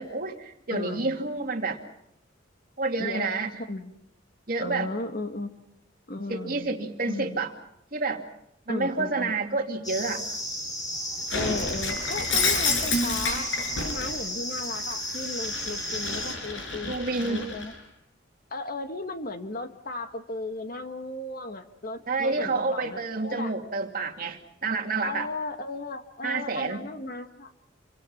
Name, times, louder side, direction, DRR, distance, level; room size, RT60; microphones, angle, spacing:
voice 1, 0.0-1.8 2.8-3.6 4.5-4.9 6.3-7.5 7.9-8.2 8.7-10.2 16.8-17.5 22.1-25.3 26.2-26.8, right 3 dB, 50° right, 3 dB, 2.6 m, -29 dB
voice 2, 0.7-1.2 3.0-3.3 3.7-3.9 4.6-5.5 6.1-6.8 7.1-7.4 8.7-9.3 11.3-13.5 13.8-17.7 18.5-23.5 25.0-27.5, left 2 dB, 50° left, 7 dB, 1.8 m, -35 dB
sound 1, 9.8-16.4, equal, 20° left, 5.8 m, -34 dB
Shatter, 11.3-14.2 14.6-17.7, left 3 dB, 85° left, 6.9 m, -29 dB
28.5 x 24.0 x 5.8 m, 0.77 s
head